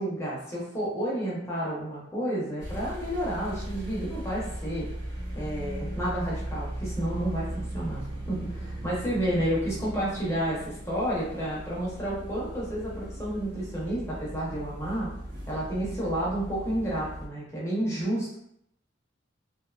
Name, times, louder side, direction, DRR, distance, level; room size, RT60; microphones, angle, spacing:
voice 1, 0.0-4.9 5.3-15.1 15.5-18.4, right 1 dB, 15° left, -7 dB, 0.7 m, -31 dB
sound 1, 2.6-17.3, right 1 dB, 60° right, 0.8 m, -37 dB
2.6 x 2.2 x 2.4 m, 0.73 s
head